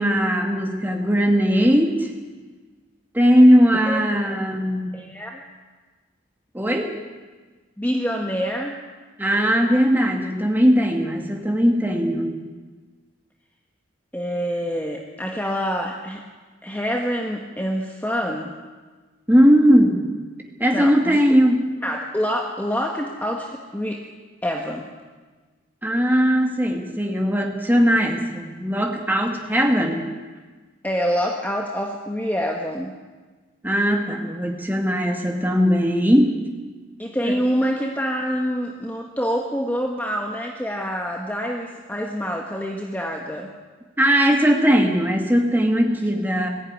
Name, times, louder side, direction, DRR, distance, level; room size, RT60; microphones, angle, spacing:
voice 1, 0.0-2.1 3.1-5.0 6.5-6.9 9.2-12.3 19.3-20.1 20.6-21.7 25.8-30.1 33.6-36.3 37.2-37.4 44.0-46.5, equal, 10° right, 2 dB, 2.3 m, -19 dB
voice 2, 3.8-4.4 4.9-5.4 7.8-8.8 14.1-16.2 16.6-18.5 20.7-21.4 21.8-24.0 24.4-24.9 30.8-32.9 37.0-43.5, equal, 10° left, 1 dB, 1.4 m, -26 dB
20.5 x 15.0 x 9.8 m, 1.4 s
head